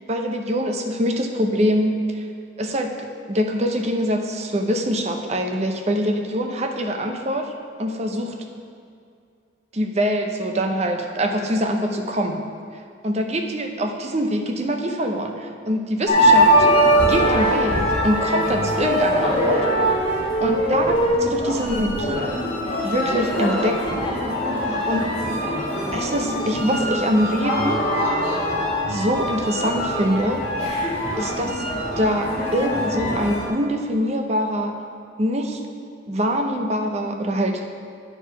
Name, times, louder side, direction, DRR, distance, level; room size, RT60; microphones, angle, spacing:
voice 1, 0.1-2.2 2.6-7.5 7.8-8.4 9.7-12.5 12.7-16.7 17.0-19.7 20.4-21.0 21.2-22.3 22.8-24.1 24.9-25.1 25.9-27.8 28.9-30.5 31.2-31.6 32.0-34.8 35.2-35.6 36.1-37.6, equal, 35° right, 4 dB, 0.6 m, -24 dB
sound 1, 16.1-33.5, equal, 30° left, 1.7 m, -22 dB
8.9 x 4.7 x 5.9 m, 2.4 s
head